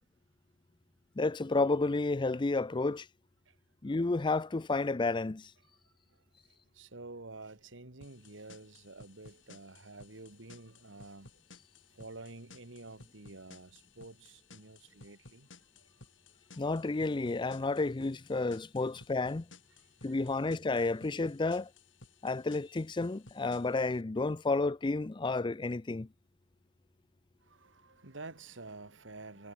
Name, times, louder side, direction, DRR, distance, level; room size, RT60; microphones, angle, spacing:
voice 1, 1.2-3.1 3.8-5.5 16.6-19.5 20.0-21.7 22.2-26.1, left 3 dB, 25° left, 0.5 m, -31 dB
voice 2, 5.7-11.4 11.9-16.0 19.7-20.3 27.4-29.5, right 3 dB, 80° right, 2.2 m, -50 dB
sound 1, 8.0-24.0, left 3 dB, 80° left, 7.7 m, -58 dB
head